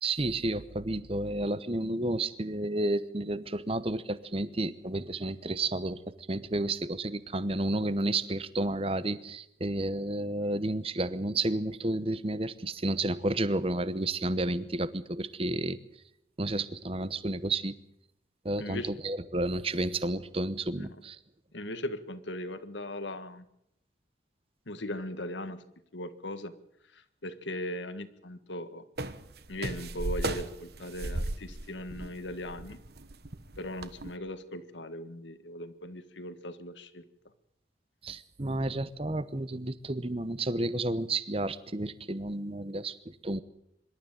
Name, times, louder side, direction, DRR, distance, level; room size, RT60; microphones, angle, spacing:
voice 1, 0.0-6.0 6.3-15.8 16.4-17.7 18.4-21.2 38.0-43.4, right 2 dB, 30° right, 15 dB, 0.9 m, -31 dB
voice 2, 18.6-18.9 20.7-21.0 21.5-23.5 24.7-25.6 25.9-26.5 26.9-28.8 29.5-32.8 33.6-37.0, left 1 dB, 80° left, 11 dB, 1.7 m, -39 dB
sound 1, 29.0-34.1, right 2 dB, 55° right, 1.3 m, -35 dB
25.0 x 12.5 x 9.1 m, 0.79 s
head